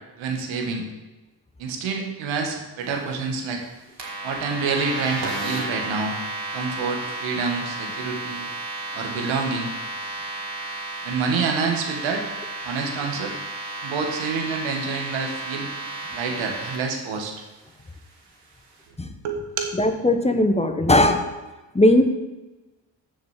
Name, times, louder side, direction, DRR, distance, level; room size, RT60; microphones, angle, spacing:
voice 1, 0.2-0.8 1.6-3.6 4.2-6.1 6.5-8.5 8.9-9.7 11.0-12.2 12.6-13.3 13.8-15.7 16.1-17.3 19.2-19.8, right 5 dB, 80° right, 2 dB, 1.7 m, -27 dB
sound 1, 4.0-16.8, right 2 dB, 65° right, 2.8 m, -32 dB
voice 2, 19.7-21.2 21.7-22.0, left 1 dB, 15° left, 7 dB, 1.1 m, -18 dB
7.0 x 6.6 x 7.4 m, 1.1 s
supercardioid pair, 60°, 45 cm